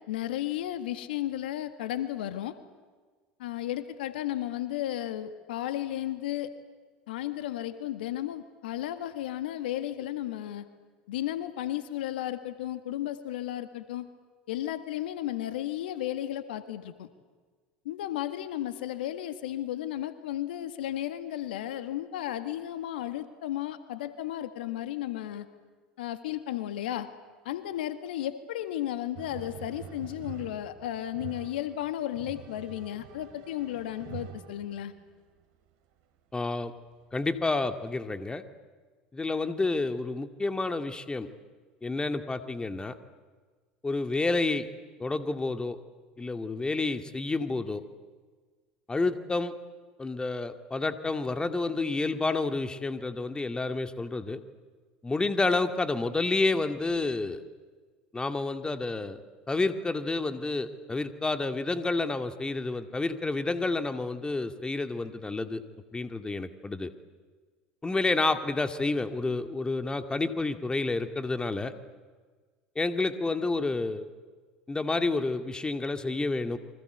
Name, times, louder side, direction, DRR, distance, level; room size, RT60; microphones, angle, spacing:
voice 1, 0.1-2.6 3.4-6.5 7.1-10.6 11.1-14.1 14.5-17.1 17.9-25.5 26.0-27.1 27.5-34.9, left 12 dB, 75° left, 10 dB, 1.8 m, -34 dB
sound 1, 29.1-35.1 36.4-36.5 37.3-37.9, right 9 dB, 65° right, 3.9 m, -46 dB
voice 2, 36.3-36.7 37.1-38.4 39.1-41.3 41.8-42.9 43.8-44.7 45.0-45.8 46.2-47.8 48.9-49.5 50.0-54.4 55.0-57.4 58.1-59.2 59.5-65.6 65.9-66.9 67.8-71.7 72.8-74.1 74.7-76.6, left 3 dB, 15° left, 8 dB, 2.3 m, -29 dB
28.5 x 24.5 x 8.2 m, 1.4 s
hypercardioid pair, 75°, 5 cm